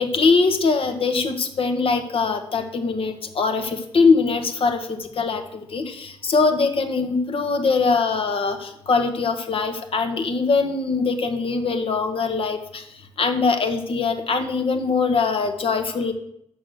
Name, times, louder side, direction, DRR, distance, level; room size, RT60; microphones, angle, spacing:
voice 1, 0.0-12.8 13.2-16.1, left 4 dB, 50° left, 7 dB, 1.2 m, -22 dB
6.4 x 6.3 x 6.6 m, 0.75 s
hypercardioid pair, 40°, 12 cm